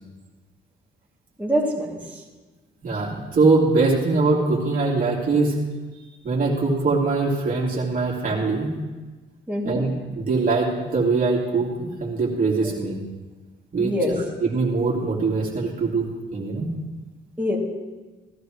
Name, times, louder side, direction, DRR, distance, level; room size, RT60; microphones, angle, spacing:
voice 1, 1.4-2.0 9.5-9.8 13.8-14.1 17.4-17.6, equal, 5° right, -5 dB, 2.7 m, -24 dB
voice 2, 2.8-5.6 6.2-8.7 9.6-13.0 13.7-16.0 16.3-16.7, right 3 dB, 45° right, -4 dB, 2.9 m, -22 dB
17.0 x 12.0 x 3.2 m, 1.2 s
cardioid pair, 90°, 20 cm